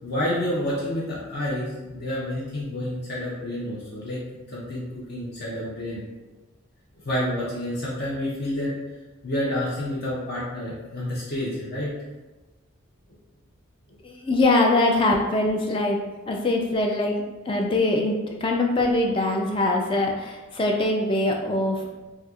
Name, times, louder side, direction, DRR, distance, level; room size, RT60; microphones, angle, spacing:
voice 1, 0.0-6.0 6.9-8.7 9.2-11.9 13.9-14.0, left 1 dB, 50° left, -7 dB, 0.7 m, -29 dB
voice 2, 14.0-16.0 16.3-21.9, left 2 dB, 25° left, 1 dB, 0.3 m, -23 dB
4.2 x 2.3 x 2.4 m, 1.1 s
head